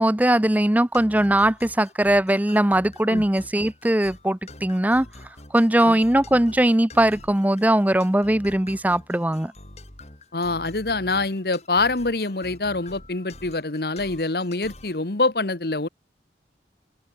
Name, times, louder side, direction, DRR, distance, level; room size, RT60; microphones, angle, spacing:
voice 1, 0.0-5.1 5.5-9.5, right 1 dB, 10° right, 0.6 m, -20 dB
sound 1, 0.9-15.0, left 2 dB, 40° left, 5.2 m, -45 dB
voice 2, 10.3-15.9, left 3 dB, 60° left, 1.4 m, -25 dB
open air
head